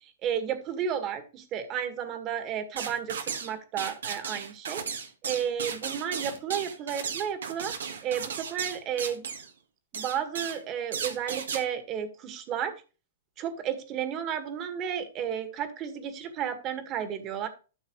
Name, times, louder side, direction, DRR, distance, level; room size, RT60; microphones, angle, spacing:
voice 1, 0.0-4.8 5.2-9.3 9.9-12.8 13.4-17.5, right 8 dB, 35° right, 8 dB, 1.9 m, -32 dB
sound 1, 2.8-3.5 3.8-9.5 9.9-10.6 10.9-11.6, right 6 dB, 80° right, 1.6 m, -35 dB
13.0 x 6.5 x 3.2 m, 0.33 s
hypercardioid pair, 125°, 0 cm